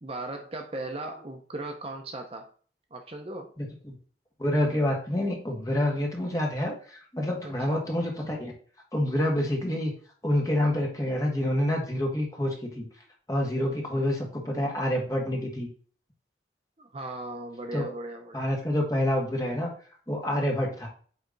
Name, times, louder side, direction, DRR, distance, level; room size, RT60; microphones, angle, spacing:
voice 1, 0.0-2.5 2.9-3.5 7.4-7.8 16.8-18.5, right 2 dB, 30° right, 3 dB, 0.7 m, -37 dB
voice 2, 3.6-3.9 4.4-8.5 8.9-9.9 10.2-12.8 13.3-15.7 17.7-17.9 18.3-19.7 20.1-20.9, left 1 dB, 20° left, 0 dB, 1.6 m, -27 dB
8.5 x 3.3 x 4.0 m, 0.43 s
head